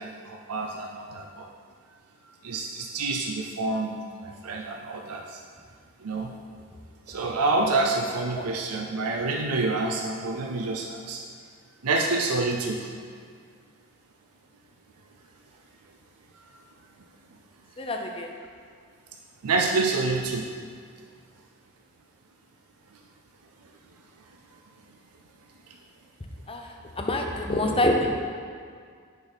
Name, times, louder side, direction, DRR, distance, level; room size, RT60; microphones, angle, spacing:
voice 1, 0.0-1.5 2.4-5.4 6.0-6.3 7.1-11.2 11.8-12.9 19.4-20.5, right 3 dB, 90° right, 1 dB, 0.6 m, -27 dB
voice 2, 17.8-18.3 26.5-26.7 27.0-28.1, left 1 dB, 25° left, 2 dB, 0.6 m, -26 dB
8.9 x 5.2 x 4.1 m, 2.1 s
head